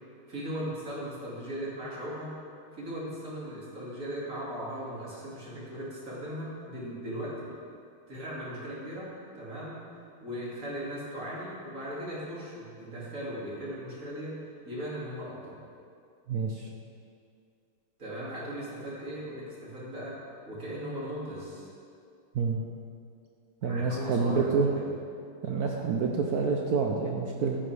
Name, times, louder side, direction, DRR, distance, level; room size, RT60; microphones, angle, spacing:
voice 1, 0.3-2.3 2.7-7.5 8.1-9.8 10.2-14.4 14.6-15.6 18.0-20.2 20.5-21.7 23.6-24.9, equal, 40° right, -6 dB, 2.9 m, -38 dB
voice 2, 16.3-16.7 22.3-22.6 23.6-24.7 25.4-27.6, right 5 dB, 65° right, 1 dB, 1.0 m, -27 dB
14.5 x 9.1 x 3.4 m, 2.4 s
omnidirectional pair, 2.3 m